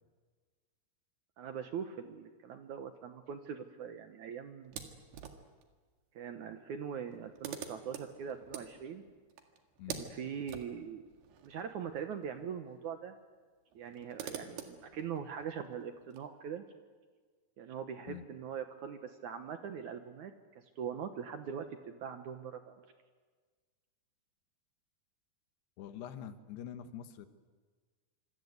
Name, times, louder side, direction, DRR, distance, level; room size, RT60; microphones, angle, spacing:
voice 1, 1.4-4.9 6.2-9.0 9.9-11.0 11.4-13.1 13.8-16.6 17.6-22.9, right 7 dB, 65° right, 8 dB, 2.1 m, -42 dB
sound 1, 4.6-5.7 6.7-6.8 7.0-12.5 12.8-12.9 13.7-16.2, right 8 dB, 80° right, 4.0 m, -47 dB
voice 2, 25.8-27.3, left 9 dB, 85° left, 10 dB, 3.4 m, -45 dB
26.5 x 24.5 x 8.2 m, 1.5 s
omnidirectional pair, 4.6 m